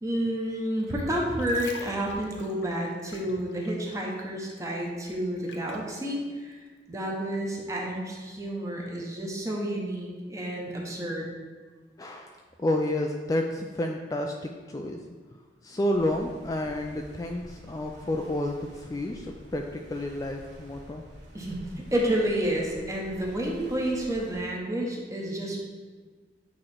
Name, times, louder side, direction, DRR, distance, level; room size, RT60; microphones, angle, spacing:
voice 1, 0.0-6.6 6.9-11.3 21.3-25.6, right 1 dB, 20° right, -2 dB, 1.0 m, -30 dB
sound 1, 1.2-4.2 4.5-5.9 6.5-6.7, left 4 dB, 85° left, 0.7 m, -46 dB
voice 2, 12.0-15.0 15.6-21.0, left 1 dB, 20° left, 2 dB, 0.3 m, -30 dB
sound 2, 15.9-24.4, equal, 80° right, 1.6 m, -49 dB
8.5 x 3.1 x 4.4 m, 1.5 s
head